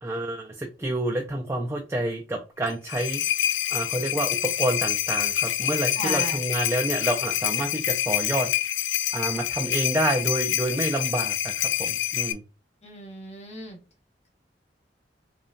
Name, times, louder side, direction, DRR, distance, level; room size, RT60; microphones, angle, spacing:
voice 1, 0.0-3.2 3.7-8.5 9.1-12.4, right 1 dB, 15° right, 1 dB, 0.4 m, -28 dB
sound 1, 2.7-12.3, left 12 dB, 90° left, 0.4 m, -27 dB
voice 2, 5.9-6.4 12.8-13.8, left 1 dB, 40° left, -1 dB, 1.6 m, -35 dB
5.2 x 2.4 x 2.5 m, 0.31 s
head